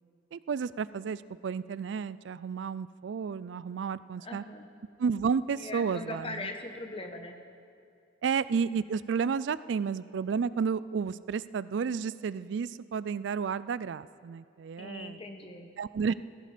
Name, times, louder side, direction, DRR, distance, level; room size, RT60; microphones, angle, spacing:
voice 1, 0.3-4.4 5.0-6.5 8.2-15.2 15.8-16.1, right 6 dB, 80° right, 17 dB, 0.4 m, -32 dB
voice 2, 4.2-4.7 5.5-7.4 14.8-15.7, left 2 dB, 30° left, 5 dB, 1.2 m, -40 dB
16.5 x 15.0 x 5.0 m, 2.4 s
head